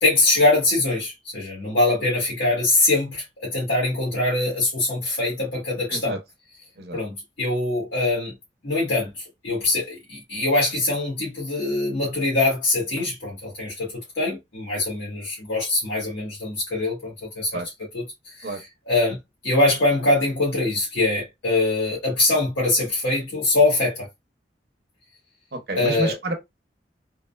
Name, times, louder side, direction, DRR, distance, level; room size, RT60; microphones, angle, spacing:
voice 1, 0.0-6.2 6.9-8.3 8.6-17.6 17.9-18.5 18.9-19.2 19.4-24.1 25.8-26.1, left 2 dB, 85° left, 1.5 m, -23 dB
voice 2, 25.5-26.3, right 2 dB, 60° right, 0.8 m, -29 dB
3.7 x 2.1 x 2.3 m
head